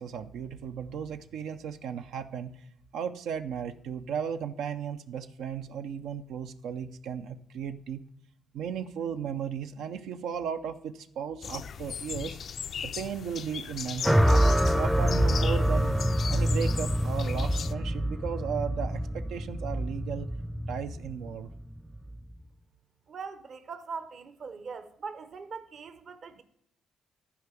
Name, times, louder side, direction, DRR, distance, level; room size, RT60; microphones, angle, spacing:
voice 1, 0.0-2.6 2.9-8.1 8.5-12.4 12.8-16.0 16.3-20.3 20.7-21.5, right 7 dB, 85° right, 0.5 m, -35 dB
sound 1, 11.4-17.7, left 7 dB, 55° left, 0.4 m, -38 dB
sound 2, 14.0-22.3, equal, 5° right, 0.5 m, -26 dB
voice 2, 23.1-26.4, right 5 dB, 50° right, 0.8 m, -41 dB
11.5 x 4.9 x 6.8 m
cardioid pair, 90°, 0 cm